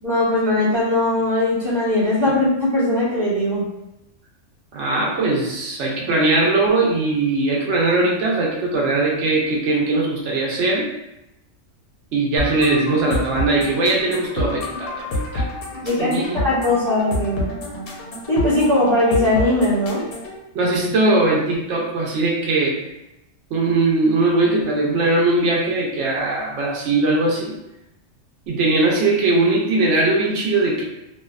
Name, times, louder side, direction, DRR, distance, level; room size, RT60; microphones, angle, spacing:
voice 1, 0.0-3.7 15.8-17.5 18.3-20.0, left 1 dB, 20° right, -9 dB, 0.9 m, -19 dB
voice 2, 4.7-10.9 12.1-15.5 16.0-16.4 20.5-22.8 23.5-27.5 28.5-30.8, right 2 dB, 70° right, -2 dB, 0.9 m, -20 dB
sound 1, 12.4-20.4, left 1 dB, 60° left, 0.7 m, -28 dB
2.6 x 2.1 x 2.4 m, 0.88 s
omnidirectional pair, 1.3 m